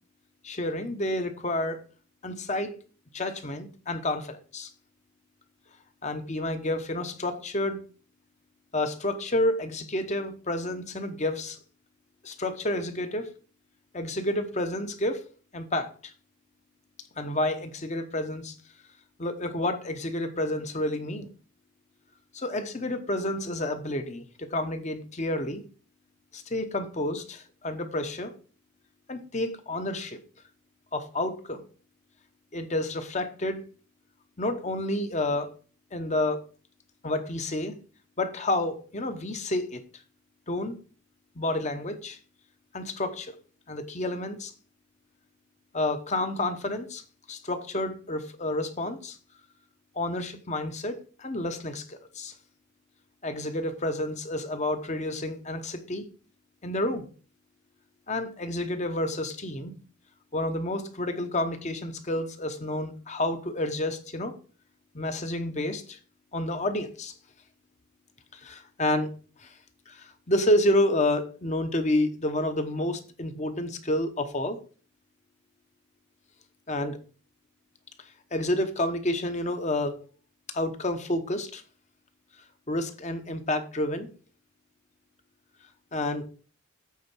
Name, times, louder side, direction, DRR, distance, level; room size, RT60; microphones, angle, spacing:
voice 1, 0.4-1.8 2.2-2.8 3.1-4.7 6.0-7.8 8.7-11.6 12.2-13.3 13.9-15.2 15.5-16.1 17.2-18.5 19.2-21.3 22.3-25.6 26.3-28.3 29.1-30.2 30.9-31.7 32.5-33.6 34.4-35.5 35.9-36.5 37.0-37.7 38.2-39.8 40.5-40.8 41.3-42.2 42.7-43.4 43.7-44.5 45.7-47.0 47.3-49.2 49.9-52.3 53.2-56.1 56.6-57.1 58.1-59.7 60.3-64.4 64.9-66.0 66.3-67.1 68.3-69.1 69.4-69.5 69.9-74.6 76.7-77.0 78.3-79.9 80.5-81.6 82.7-84.1 85.9-86.2, left 1 dB, 35° left, 1.0 m, -29 dB
8.4 x 4.4 x 6.1 m
head